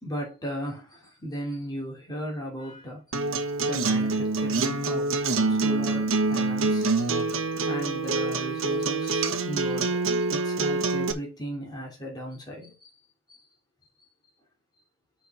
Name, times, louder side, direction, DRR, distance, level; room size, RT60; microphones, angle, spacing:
voice 1, 0.0-3.0 3.6-5.1 5.5-7.0 7.6-12.9, equal, 20° left, 3.1 m, -36 dB
Acoustic guitar, 3.1-11.1, right 3 dB, 75° right, 1.1 m, -26 dB
6.7 x 5.5 x 5.5 m
head